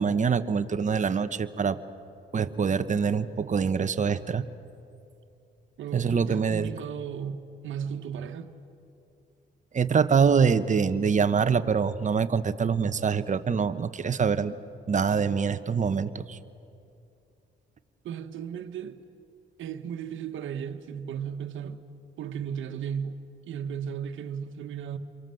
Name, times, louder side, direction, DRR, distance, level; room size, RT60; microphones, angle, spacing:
voice 1, 0.0-1.8 2.3-4.4 5.9-6.7 9.7-14.5 14.9-16.4, right 6 dB, 40° right, 1.1 m, -25 dB
voice 2, 5.8-8.5 18.0-19.0 19.6-21.8 22.2-25.0, right 8 dB, 75° right, 1.5 m, -35 dB
29.0 x 23.5 x 7.8 m
cardioid pair, 90°, 20 cm